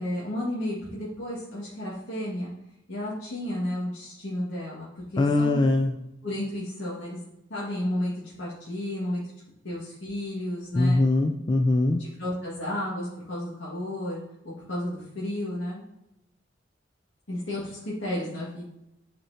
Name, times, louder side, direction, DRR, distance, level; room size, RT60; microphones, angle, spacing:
voice 1, 0.0-2.5 2.9-5.6 6.2-7.2 7.5-9.2 9.6-11.0 12.0-15.8 17.3-18.7, left 1 dB, 80° left, -7 dB, 1.7 m, -32 dB
voice 2, 5.2-5.9 10.7-12.0, left 2 dB, 25° left, 4 dB, 0.3 m, -22 dB
9.0 x 4.3 x 2.7 m, 0.86 s
head